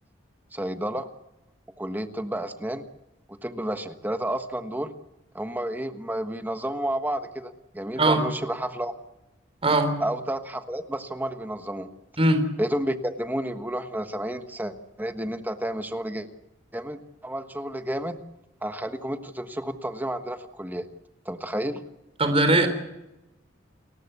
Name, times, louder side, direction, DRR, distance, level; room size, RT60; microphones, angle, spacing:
voice 1, 0.5-1.1 1.8-2.8 3.4-4.9 5.3-8.9 10.0-11.9 12.6-16.3 16.7-18.2 18.6-20.8 21.2-21.8, right 1 dB, 10° right, 8 dB, 1.4 m, -31 dB
voice 2, 9.6-9.9 12.2-12.5 22.2-22.7, right 2 dB, 30° right, 8 dB, 3.8 m, -20 dB
30.0 x 14.5 x 8.2 m, 0.94 s
head